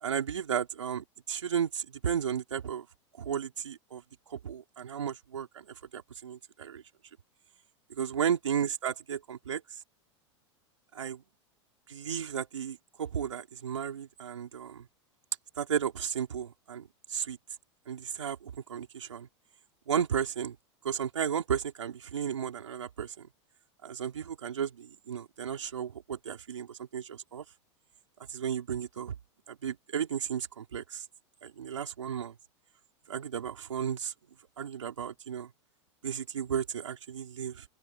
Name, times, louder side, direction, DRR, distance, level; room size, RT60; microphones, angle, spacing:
voice 1, 0.0-2.8 3.2-4.0 4.3-5.7 5.9-6.8 8.0-9.6 10.9-11.2 11.9-14.9 15.6-17.4 17.9-19.3 19.9-20.6 20.8-23.3 23.8-27.4 28.3-29.2 29.5-31.0 31.4-32.3 33.1-34.1 34.6-35.5 36.0-37.6, right 8 dB, 90° right, 4.1 m, -34 dB
open air
hypercardioid pair, 100°, 15 cm